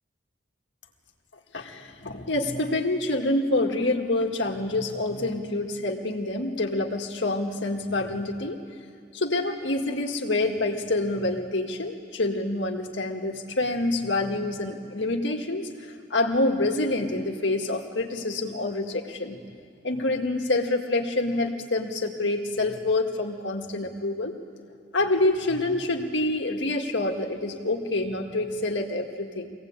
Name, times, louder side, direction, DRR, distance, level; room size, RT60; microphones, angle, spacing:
voice 1, 1.5-8.6 9.1-19.4 19.8-24.3 24.9-29.5, left 2 dB, 80° left, 3 dB, 1.9 m, -27 dB
23.5 x 17.5 x 8.9 m, 2.1 s
head